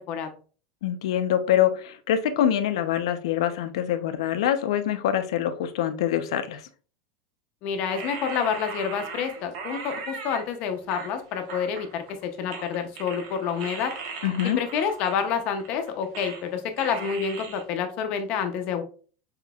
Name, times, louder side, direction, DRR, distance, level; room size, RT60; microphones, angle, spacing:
voice 1, 0.8-6.7 14.2-14.6, left 10 dB, 85° left, 9 dB, 0.7 m, -25 dB
voice 2, 7.6-13.9 14.6-18.8, left 7 dB, 40° left, 6 dB, 0.7 m, -28 dB
sound 1, 7.9-10.4 10.9-12.2 12.5-16.5 16.8-17.6, right 5 dB, 55° right, 1.2 m, -38 dB
5.9 x 3.8 x 2.4 m, 0.39 s
supercardioid pair, 170°, 3 cm